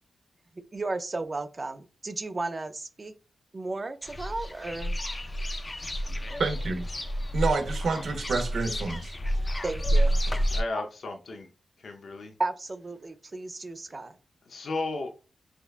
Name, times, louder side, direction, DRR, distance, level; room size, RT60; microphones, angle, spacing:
voice 1, 0.7-3.1 3.5-5.0 9.6-10.2 12.4-14.2, right 2 dB, 30° right, 0.4 m, -34 dB
sound 1, 4.0-10.6, equal, 25° left, 0.4 m, -29 dB
voice 2, 6.4-6.9 7.3-9.1, right 4 dB, 80° right, 0.9 m, -28 dB
voice 3, 10.5-11.5 11.8-12.3 14.5-15.1, left 2 dB, 65° left, 0.7 m, -34 dB
4.8 x 2.3 x 2.4 m
wide cardioid pair, 105°, 0 cm